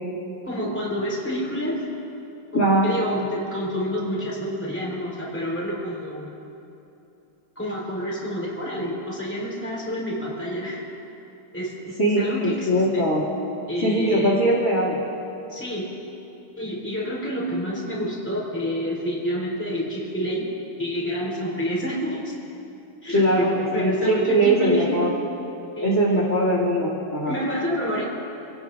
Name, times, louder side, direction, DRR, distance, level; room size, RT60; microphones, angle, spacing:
voice 1, 0.4-1.8 2.5-6.3 7.6-10.8 11.5-13.1 13.7-14.4 15.5-15.9 16.6-20.5 20.8-22.3 23.0-25.0 25.8-26.0 27.3-28.0, equal, 5° left, -5 dB, 3.8 m, -28 dB
voice 2, 2.5-2.9 12.0-13.2 13.8-15.0 23.1-25.1 25.8-27.3, right 1 dB, 35° left, -6 dB, 3.0 m, -21 dB
27.0 x 18.5 x 2.6 m, 2.9 s
omnidirectional pair, 2.4 m